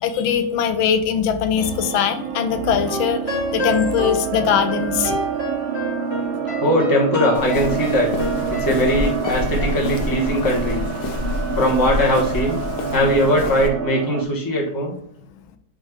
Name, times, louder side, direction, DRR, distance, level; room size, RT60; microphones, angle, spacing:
voice 1, 0.0-5.2 10.3-10.5, left 8 dB, 85° left, 8 dB, 1.5 m, -21 dB
sound 1, 1.5-14.2, right 7 dB, 80° right, 1.3 m, -28 dB
sound 2, 2.8-9.8, left 1 dB, 35° left, 1.6 m, -30 dB
voice 2, 6.6-8.1 8.5-10.8 11.5-12.6 12.9-14.9, equal, 15° left, -3 dB, 1.0 m, -20 dB
Walk footsteps, 7.3-13.7, left 2 dB, 65° left, 1.2 m, -27 dB
4.6 x 4.4 x 4.7 m, 0.68 s
omnidirectional pair, 2.2 m